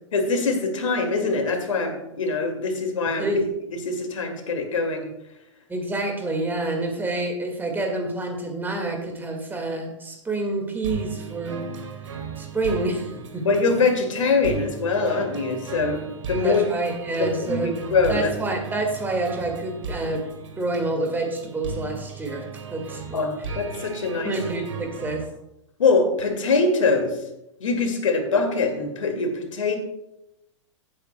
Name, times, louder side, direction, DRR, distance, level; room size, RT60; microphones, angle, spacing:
voice 1, 0.1-3.3 3.7-5.1 13.4-16.6 17.2-17.6 17.9-18.2 23.1-24.3 25.8-27.2 27.6-29.8, left 4 dB, 75° left, 4 dB, 2.2 m, -23 dB
voice 2, 5.7-11.6 12.4-13.5 16.4-17.7 18.1-20.3 20.6-22.4 22.7-23.2 24.2-25.2, right 2 dB, 10° right, 3 dB, 1.9 m, -28 dB
sound 1, 10.8-25.2, right 5 dB, 70° right, 2.0 m, -36 dB
16.0 x 8.8 x 2.2 m, 0.88 s
hypercardioid pair, 110°, 16 cm